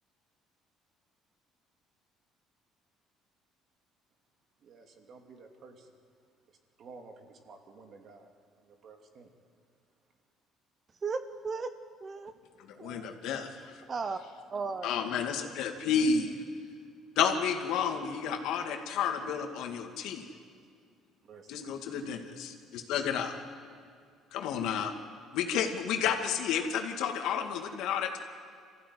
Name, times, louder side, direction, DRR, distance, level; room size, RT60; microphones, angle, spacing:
voice 1, 4.6-5.9 6.5-9.3 21.2-21.8, right 4 dB, 45° right, 4 dB, 2.8 m, -53 dB
voice 2, 11.0-11.7 12.0-12.3 12.8-13.1 13.9-14.2 14.5-15.0, right 4 dB, 30° right, 10 dB, 0.9 m, -35 dB
voice 3, 12.6-13.8 14.8-16.4 17.2-20.3 21.5-23.4 24.3-24.9 25.3-28.2, left 7 dB, 75° left, 4 dB, 2.3 m, -31 dB
25.0 x 15.0 x 9.8 m, 2.2 s
cardioid pair, 130°, 0 cm